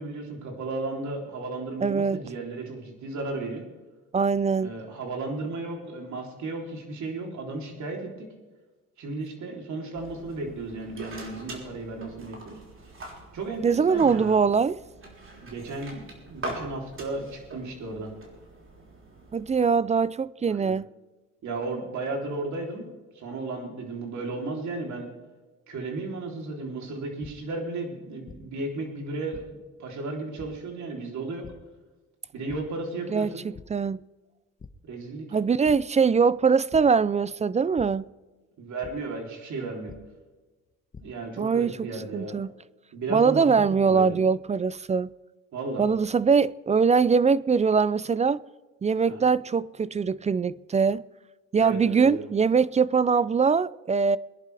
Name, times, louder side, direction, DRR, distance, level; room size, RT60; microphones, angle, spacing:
voice 1, 0.0-3.6 4.6-8.3 9.0-12.6 13.3-14.4 15.4-18.1 20.5-20.7 21.4-25.1 25.7-29.4 29.8-31.5 32.3-33.5 34.9-35.3 38.6-39.9 41.0-42.4 42.9-43.5 43.8-44.2 45.5-45.8 49.1-49.3 51.6-52.3, right 3 dB, 70° right, 3.4 m, -34 dB
voice 2, 1.8-2.2 4.1-4.7 13.6-14.8 19.3-20.9 33.1-33.3 33.7-34.0 35.3-38.0 41.4-41.7 42.1-42.5 43.1-45.1 45.8-48.4 48.8-51.0 51.5-54.2, right 5 dB, 25° right, 0.3 m, -22 dB
sound 1, 9.9-19.7, right 1 dB, 45° right, 3.7 m, -43 dB
sound 2, 27.2-27.3 28.3-28.4 29.3-29.4 30.4-30.5 31.4-31.5 32.5-32.6 33.0-33.2 33.5-33.6 34.6-34.7 35.6-35.8 36.7-36.8 37.8-37.9 38.8-38.9 39.9-40.0 40.7-41.0, left 5 dB, 25° left, 1.0 m, -43 dB
22.0 x 11.0 x 3.4 m
cardioid pair, 90°, 30 cm